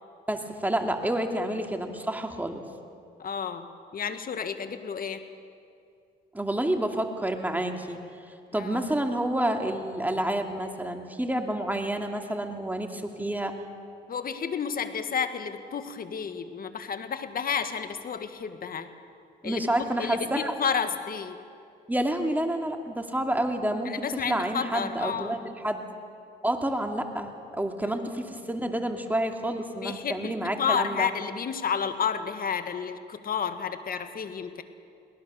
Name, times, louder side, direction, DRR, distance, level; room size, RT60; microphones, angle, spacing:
voice 1, 0.3-2.6 6.3-8.0 8.5-13.6 19.4-20.5 21.9-25.8 26.4-31.1, right 1 dB, 10° right, 4 dB, 2.4 m, -29 dB
voice 2, 3.2-5.2 8.5-8.8 14.1-18.9 19.4-21.4 23.8-25.4 27.8-28.0 29.8-34.6, left 6 dB, 50° left, 9 dB, 1.7 m, -31 dB
23.0 x 18.5 x 7.0 m, 2.4 s
supercardioid pair, 75°, 19 cm